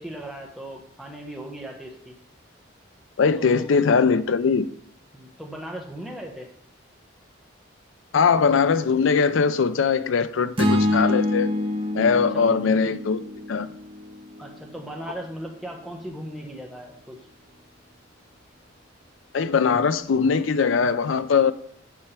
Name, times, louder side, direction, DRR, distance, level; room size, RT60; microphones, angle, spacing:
voice 1, 0.0-2.2 3.4-3.7 4.7-4.8 5.1-6.5 12.1-12.4 14.4-17.2, right 1 dB, ahead, 1.2 m, -37 dB
voice 2, 3.2-4.7 8.1-11.5 11.9-13.2 13.5-13.7 19.3-21.5, left 5 dB, 80° left, 0.5 m, -21 dB
sound 1, 10.6-14.8, left 1 dB, 30° right, 0.9 m, -26 dB
8.9 x 5.6 x 3.4 m
head